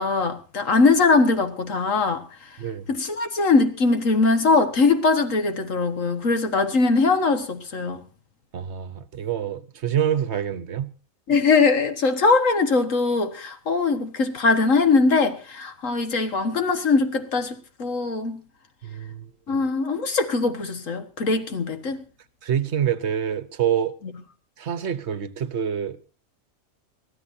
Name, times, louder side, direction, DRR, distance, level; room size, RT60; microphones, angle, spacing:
voice 1, 0.0-2.6 2.9-8.1 11.3-18.4 19.5-22.0, left 4 dB, 75° left, 1.9 m, -21 dB
voice 2, 2.6-2.9 8.5-10.9 18.8-19.6 22.4-23.9 24.6-26.0, right 9 dB, 60° right, 1.1 m, -26 dB
23.5 x 14.5 x 2.7 m
omnidirectional pair, 1.4 m